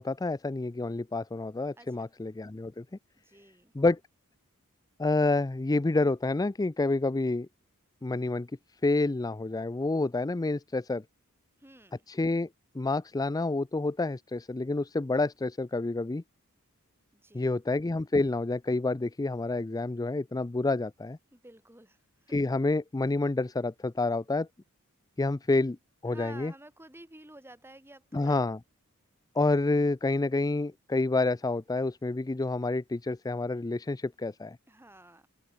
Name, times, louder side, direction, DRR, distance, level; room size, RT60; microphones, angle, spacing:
voice 1, 0.0-2.8 3.7-4.0 5.0-7.5 8.0-8.5 8.8-11.0 12.1-12.5 12.7-16.2 17.3-21.2 22.3-24.5 25.2-25.8 26.0-26.5 28.1-28.6 29.3-34.6, left 2 dB, 15° left, 0.4 m, -28 dB
voice 2, 1.8-2.1 3.2-3.7 11.6-12.0 17.2-17.5 21.3-22.4 26.1-28.5 29.4-29.5 34.7-35.3, right 1 dB, 10° right, 4.4 m, -52 dB
head